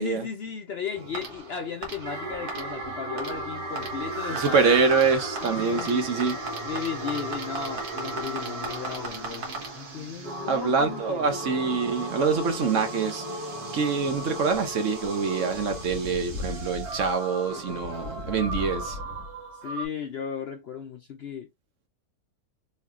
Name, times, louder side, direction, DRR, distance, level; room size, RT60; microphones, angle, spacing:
voice 1, 0.0-4.7 5.4-6.0 6.6-9.5 9.7-11.3 19.6-21.5, left 6 dB, 60° left, 0.7 m, -35 dB
sound 1, 0.9-19.9, right 1 dB, 85° right, 1.8 m, -35 dB
Singing, 1.8-16.6, right 3 dB, 25° right, 1.7 m, -46 dB
voice 2, 4.3-6.4 10.5-13.2 13.7-19.0, right 5 dB, 60° right, 1.1 m, -25 dB
3.6 x 3.3 x 2.3 m
omnidirectional pair, 1.6 m